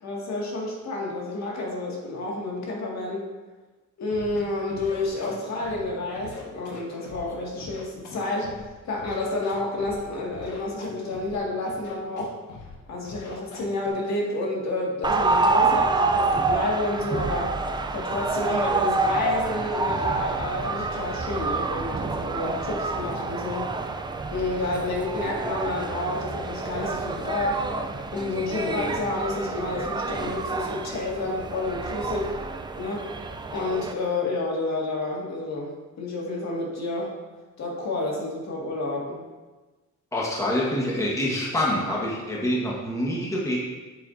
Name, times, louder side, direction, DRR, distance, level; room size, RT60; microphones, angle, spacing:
voice 1, 0.0-3.3 4.0-8.5 8.8-12.4 12.9-23.7 24.3-27.7 28.1-32.3 32.8-33.1 33.5-37.2 37.6-39.2, left 2 dB, 60° left, -2 dB, 1.9 m, -30 dB
Scratching (performance technique), 4.1-4.4 4.7-5.8 6.1-7.2 7.6-8.7 9.0-10.0 10.3-11.4 11.6-12.2 12.5-12.7 13.0-13.9, left 5 dB, 75° left, 1.5 m, -43 dB
sound 1, 15.0-33.9, right 3 dB, 15° right, 0.3 m, -28 dB
voice 2, 40.1-43.6, left 1 dB, 10° left, -5 dB, 1.3 m, -26 dB
9.0 x 7.2 x 2.6 m, 1.2 s
cardioid pair, 145°, 31 cm